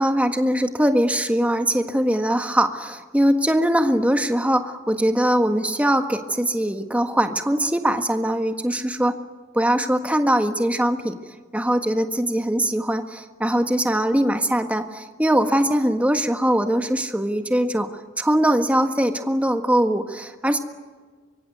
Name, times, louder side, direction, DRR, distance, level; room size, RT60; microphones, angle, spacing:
voice 1, 0.0-9.2 9.5-11.2 11.5-20.6, right 1 dB, 5° right, 6 dB, 1.6 m, -21 dB
25.0 x 23.5 x 9.4 m, 1.5 s
head